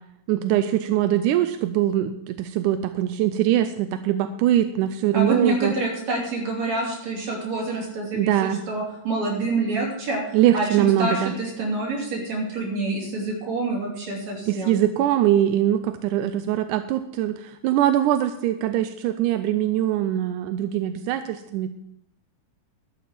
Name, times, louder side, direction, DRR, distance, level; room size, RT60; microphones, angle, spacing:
voice 1, 0.3-5.7 8.1-8.6 10.3-11.3 14.5-17.4 17.6-21.7, right 12 dB, 90° right, 10 dB, 2.1 m, -22 dB
voice 2, 5.1-8.3 8.7-10.2 10.5-14.8, right 2 dB, 60° right, -2 dB, 4.3 m, -27 dB
12.5 x 6.2 x 7.5 m, 0.78 s
omnidirectional pair, 3.5 m